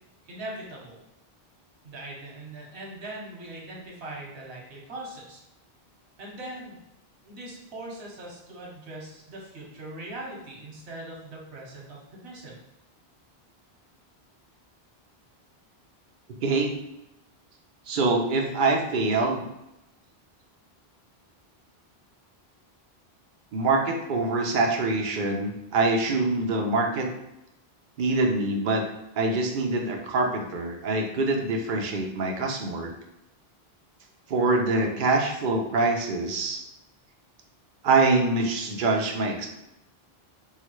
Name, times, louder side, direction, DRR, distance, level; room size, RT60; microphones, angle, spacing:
voice 1, 0.2-1.0 1.8-5.4 6.2-6.8 7.2-12.6, right 1 dB, 90° right, -2 dB, 1.2 m, -40 dB
voice 2, 16.4-16.7 17.9-19.4 23.5-27.1 28.0-28.9 29.2-32.9 34.3-36.6 37.8-39.5, right 3 dB, 60° right, 1 dB, 0.7 m, -24 dB
3.7 x 2.1 x 3.0 m, 0.89 s
omnidirectional pair, 1.1 m